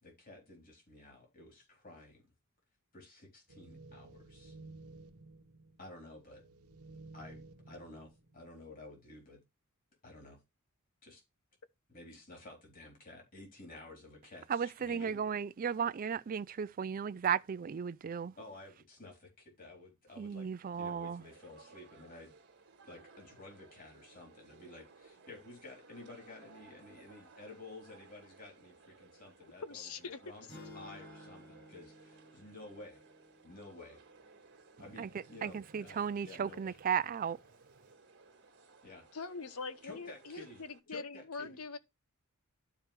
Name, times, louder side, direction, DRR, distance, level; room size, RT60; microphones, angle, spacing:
voice 1, 0.0-2.2 2.9-4.6 5.8-6.4 7.1-9.4 10.0-10.4 11.0-11.2 11.9-15.2 18.4-20.5 20.7-22.3 22.8-33.0 33.4-34.0 34.8-36.8 38.8-39.0 39.8-40.6 40.9-41.6, left 2 dB, 40° left, 3.7 m, -52 dB
sound 1, 3.5-8.6, right 2 dB, 90° right, 1.0 m, -54 dB
voice 2, 14.5-18.3 20.2-21.2 35.0-35.1 35.4-37.4, right 7 dB, 40° right, 0.3 m, -35 dB
sound 2, 21.2-40.8, right 4 dB, 55° right, 1.6 m, -60 dB
voice 3, 29.6-30.2 39.1-41.8, left 4 dB, 75° left, 0.9 m, -43 dB
sound 3, 30.5-34.6, left 1 dB, 60° left, 5.2 m, -56 dB
12.0 x 4.8 x 3.3 m
head